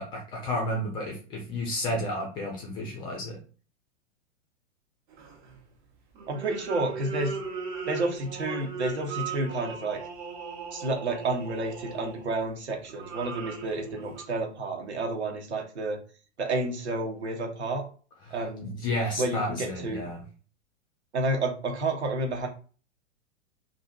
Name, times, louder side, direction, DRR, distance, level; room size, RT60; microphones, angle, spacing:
voice 1, 0.0-3.4 18.3-18.4 18.6-20.2, left 1 dB, 15° left, 0 dB, 0.4 m, -31 dB
sound 1, 5.1-5.6 6.2-12.4 12.9-14.2, right 5 dB, 45° right, 0.8 m, -38 dB
voice 2, 6.3-7.3 7.9-10.0 10.7-16.0 16.4-17.8 18.3-18.7 19.2-20.1 21.1-22.5, right 2 dB, 70° right, 1 dB, 1.0 m, -30 dB
2.6 x 2.5 x 2.4 m, 0.38 s
figure-of-eight pair, 100°, 35 cm